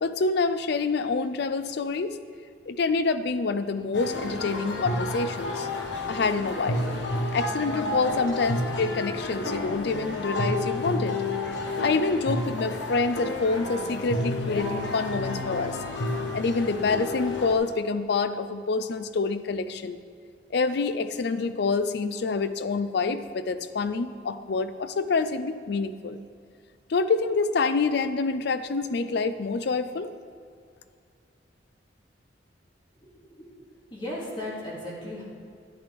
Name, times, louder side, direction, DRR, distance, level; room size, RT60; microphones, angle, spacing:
voice 1, 0.0-2.2 2.7-5.7 6.1-6.8 7.3-11.2 11.8-15.8 16.3-20.0 20.5-26.2 26.9-30.1, left 4 dB, 60° left, 12 dB, 0.5 m, -27 dB
sound 1, 3.9-17.5, left 2 dB, 80° left, 1.1 m, -30 dB
voice 2, 33.0-35.2, left 1 dB, 25° left, -6 dB, 2.3 m, -37 dB
10.5 x 10.0 x 3.4 m, 2.3 s
head